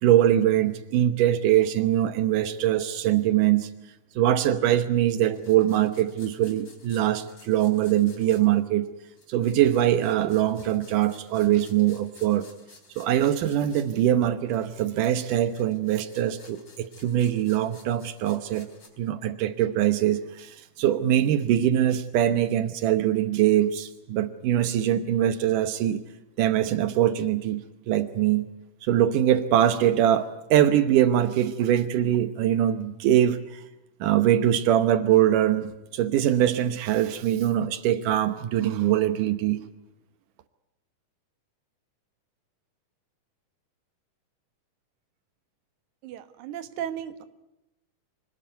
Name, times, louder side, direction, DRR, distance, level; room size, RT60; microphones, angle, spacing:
voice 1, 0.0-3.7 4.2-8.9 9.3-12.5 13.0-18.7 19.0-26.0 26.4-28.5 28.8-33.6 34.0-39.6, right 11 dB, 85° right, 11 dB, 2.6 m, -23 dB
sound 1, 5.2-8.5 9.1-13.9 14.5-18.9, left 3 dB, 35° left, 4.4 m, -54 dB
voice 2, 46.0-47.2, right 10 dB, 70° right, 10 dB, 2.7 m, -35 dB
26.0 x 19.5 x 9.3 m, 0.93 s
omnidirectional pair, 3.6 m